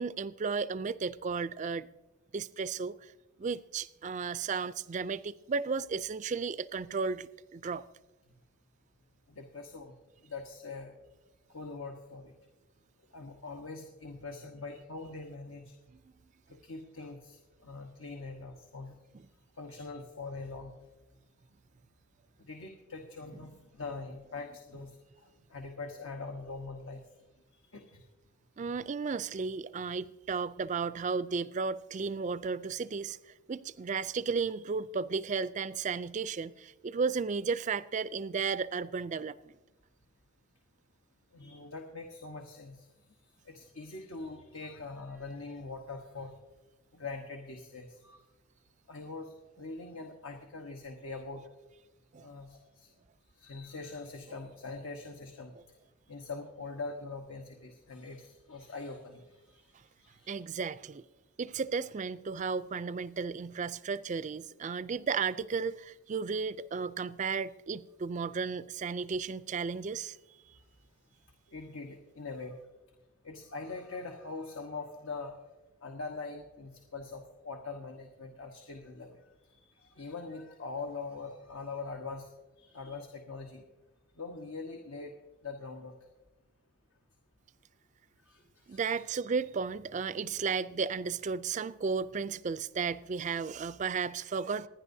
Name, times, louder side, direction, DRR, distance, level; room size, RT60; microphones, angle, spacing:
voice 1, 0.0-1.9 2.3-3.0 3.4-7.9 28.6-39.5 52.1-52.3 60.3-61.0 61.4-70.2 88.7-94.7, right 5 dB, 35° right, 0.3 m, -34 dB
voice 2, 9.3-9.9 10.2-10.9 11.5-12.3 13.1-15.8 16.5-18.9 19.6-20.7 22.4-25.0 25.2-27.0 27.6-28.0 41.3-42.9 43.4-46.4 46.9-48.2 48.9-51.4 52.2-52.9 53.4-55.6 56.1-59.2 59.6-59.7 60.0-60.3 71.5-72.6 73.2-75.4 75.8-82.3 82.6-83.6 84.2-85.1 85.4-85.9 88.3-88.8, left 3 dB, 75° left, 1.1 m, -43 dB
27.0 x 10.5 x 2.7 m
head